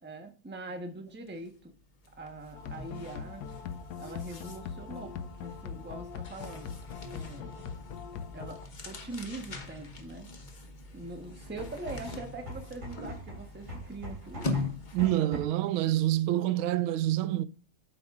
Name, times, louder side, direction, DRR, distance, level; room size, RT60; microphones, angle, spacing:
voice 1, 0.0-1.7 2.2-3.4 4.0-6.7 7.1-7.6 8.3-10.3 10.9-14.7 15.0-15.3, right 2 dB, 10° right, 0.8 m, -42 dB
sound 1, 1.3-1.5 1.8-15.2, left 3 dB, 35° left, 0.8 m, -42 dB
sound 2, 2.5-8.7, left 7 dB, 70° left, 1.0 m, -42 dB
sound 3, 11.4-15.7, equal, 35° right, 3.5 m, -43 dB
voice 2, 14.9-17.4, right 14 dB, 85° right, 1.4 m, -27 dB
8.8 x 6.8 x 2.5 m
omnidirectional pair, 2.2 m